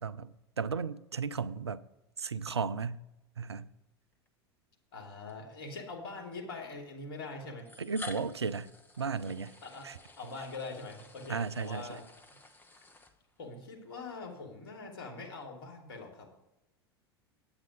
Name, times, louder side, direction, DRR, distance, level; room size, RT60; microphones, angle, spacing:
voice 1, 0.6-1.8 2.2-3.0 3.4-3.7 7.8-8.7 9.0-9.5 9.8-10.0 11.3-12.0, right 5 dB, 85° right, 0.5 m, -34 dB
sound 1, 4.1-4.3 5.3-5.4 6.6-6.7 7.6-13.6, left 2 dB, 15° left, 1.2 m, -50 dB
voice 2, 4.9-7.7 9.6-9.9 10.2-12.1 13.4-16.3, left 3 dB, 65° left, 2.9 m, -43 dB
9.2 x 8.8 x 5.3 m
figure-of-eight pair, 85°, 13 cm